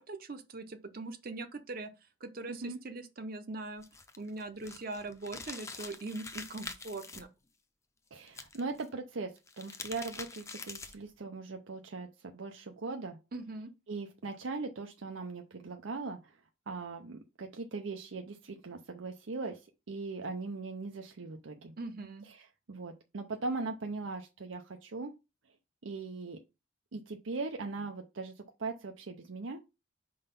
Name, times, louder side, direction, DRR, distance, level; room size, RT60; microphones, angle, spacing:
voice 1, 0.0-1.9 2.2-3.8 4.2-7.3 13.3-13.7 21.8-22.3, right 2 dB, 50° right, 0.7 m, -41 dB
voice 2, 2.5-2.8 8.1-13.2 13.9-16.4 16.7-21.7 22.2-25.1 25.8-26.4 26.9-29.6, right 3 dB, 90° right, 0.7 m, -40 dB
sound 1, 3.8-7.2 8.3-8.9 9.4-11.1, left 4 dB, 15° left, 0.6 m, -45 dB
5.4 x 3.9 x 5.2 m
head